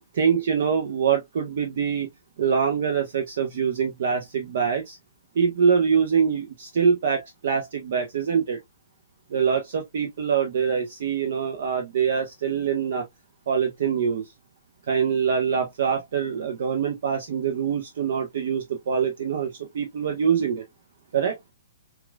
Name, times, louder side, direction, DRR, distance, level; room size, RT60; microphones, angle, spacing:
voice 1, 0.1-2.1 2.4-5.0 5.3-8.6 9.3-13.0 13.5-14.3 14.9-20.6 21.1-21.4, right 7 dB, 60° right, 0.9 m, -24 dB
5.7 x 2.6 x 2.2 m
figure-of-eight pair, 120°, 0 cm